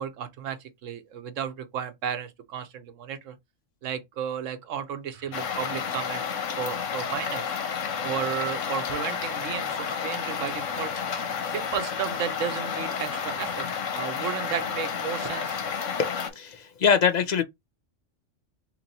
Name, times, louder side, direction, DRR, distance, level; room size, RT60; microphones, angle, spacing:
voice 1, 0.0-3.4 3.8-6.3 6.6-7.5 8.0-10.9 11.5-13.7 13.9-15.6, right 8 dB, 80° right, 1.1 m, -33 dB
sound 1, 5.1-15.7, right 6 dB, 45° right, 0.7 m, -51 dB
sound 2, 5.3-16.3, left 7 dB, 80° left, 1.1 m, -31 dB
voice 2, 16.0-17.4, left 7 dB, 50° left, 0.5 m, -24 dB
3.0 x 3.0 x 4.0 m
omnidirectional pair, 1.3 m